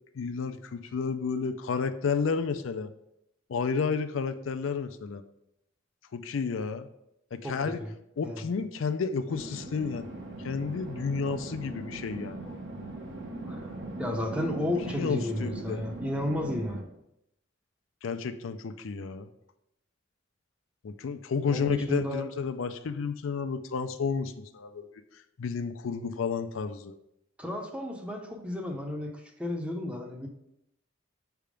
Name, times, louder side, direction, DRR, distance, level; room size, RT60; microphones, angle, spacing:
voice 1, 0.1-2.9 3.5-5.2 6.1-6.9 7.3-7.8 8.2-10.0 10.4-12.6 14.9-15.8 18.0-19.3 20.8-24.9 25.4-26.9, left 5 dB, 85° left, 10 dB, 0.4 m, -31 dB
voice 2, 7.4-7.9 8.2-8.4 13.4-13.7 14.0-16.8 21.5-22.3 27.4-30.3, left 1 dB, 5° right, 2 dB, 0.7 m, -33 dB
sound 1, 9.3-16.8, right 2 dB, 65° right, 0.9 m, -40 dB
5.7 x 3.5 x 5.0 m, 0.80 s
head